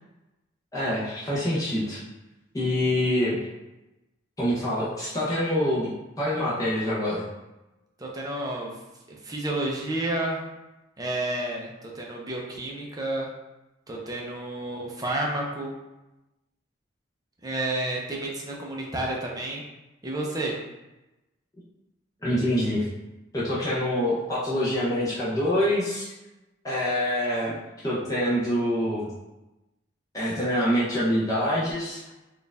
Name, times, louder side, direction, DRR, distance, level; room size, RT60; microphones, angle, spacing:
voice 1, 0.7-2.0 2.5-3.4 4.4-5.9 6.2-7.3 22.2-22.8 23.3-26.1 26.6-27.5 27.8-29.1 30.1-32.0, left 1 dB, 15° left, -9 dB, 0.8 m, -25 dB
voice 2, 8.0-8.7 9.1-10.4 11.0-13.3 13.9-15.7 17.4-19.6 20.0-20.6, right 1 dB, 20° right, -2 dB, 0.6 m, -30 dB
4.4 x 2.5 x 3.4 m, 1.0 s
head